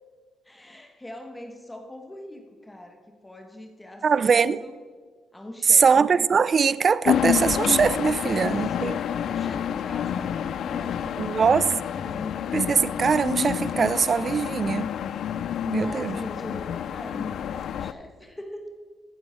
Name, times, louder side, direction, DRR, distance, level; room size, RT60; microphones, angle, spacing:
voice 1, 0.4-4.8 5.3-5.9 8.2-11.4 11.8-12.4 15.6-18.7, left 1 dB, 10° left, 5 dB, 1.2 m, -41 dB
voice 2, 4.0-4.6 5.7-9.0 11.2-11.7 12.5-14.9 15.7-16.2, right 6 dB, 45° right, 19 dB, 0.4 m, -22 dB
sound 1, 7.0-17.9, left 9 dB, 65° left, 0.4 m, -28 dB
15.5 x 7.9 x 4.4 m, 1.5 s
cardioid pair, 90°, 0 cm